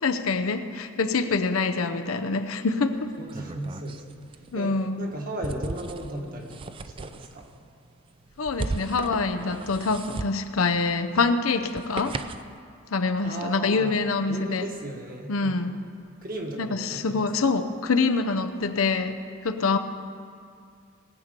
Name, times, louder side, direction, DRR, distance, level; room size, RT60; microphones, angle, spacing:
voice 1, 0.0-3.1 4.5-5.1 8.4-12.1 12.9-14.7 15.3-15.8 16.6-19.8, left 4 dB, 85° left, 8 dB, 0.7 m, -25 dB
sound 1, 2.9-12.6, right 3 dB, 25° right, 0.3 m, -38 dB
voice 2, 3.2-7.5 13.2-14.0 14.3-15.7 16.2-17.4, right 1 dB, 45° right, 1 dB, 1.7 m, -36 dB
19.5 x 8.2 x 5.3 m, 2.3 s
head